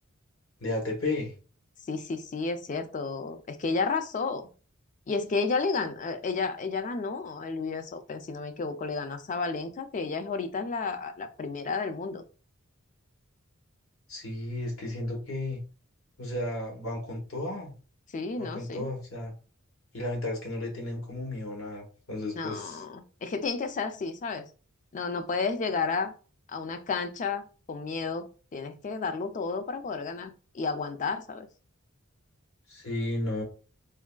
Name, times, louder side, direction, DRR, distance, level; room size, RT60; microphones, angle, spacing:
voice 1, 0.6-1.3 14.1-15.6 16.2-17.7 18.4-19.3 19.9-22.8 32.7-33.4, left 2 dB, 70° left, 1.0 m, -33 dB
voice 2, 1.9-4.5 5.1-12.2 18.1-18.9 22.4-24.5 24.9-26.1 26.5-28.3 28.5-31.5, left 4 dB, 35° left, 0.4 m, -32 dB
3.4 x 2.3 x 2.2 m
head